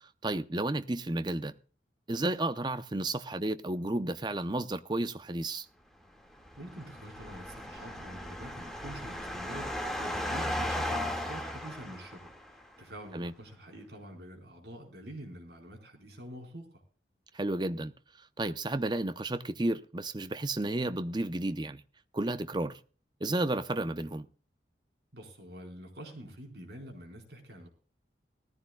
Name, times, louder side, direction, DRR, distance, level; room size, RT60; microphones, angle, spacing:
voice 1, 0.2-1.5 2.1-5.7 13.1-13.3 17.3-17.9 18.4-21.8 22.1-22.8 23.2-24.3, right 2 dB, 25° right, 0.7 m, -32 dB
sound 1, 6.3-12.6, left 1 dB, ahead, 1.9 m, -36 dB
voice 2, 6.6-12.3 12.8-16.8 25.1-27.7, right 1 dB, 70° right, 4.4 m, -46 dB
19.5 x 14.5 x 2.3 m
head